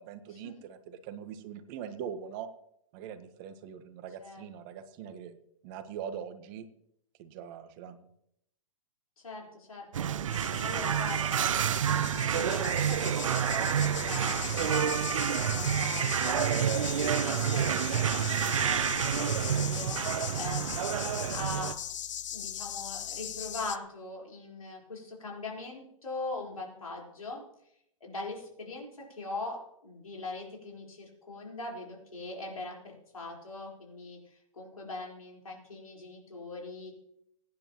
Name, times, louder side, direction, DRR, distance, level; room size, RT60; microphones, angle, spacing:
voice 1, 0.0-2.5 2.9-5.4 5.6-6.7 7.2-8.1, right 8 dB, 40° right, 10 dB, 1.2 m, -42 dB
voice 2, 9.2-9.9 10.6-11.5 11.8-12.1 12.3-21.7 22.3-27.4 28.0-36.9, left 2 dB, 80° left, -2 dB, 4.3 m, -41 dB
sound 1, 9.9-21.7, right 9 dB, 65° right, 0.6 m, -29 dB
sound 2, 10.3-23.8, left 10 dB, 60° left, 0.7 m, -39 dB
22.0 x 9.7 x 3.0 m, 0.75 s
figure-of-eight pair, 110°, 18 cm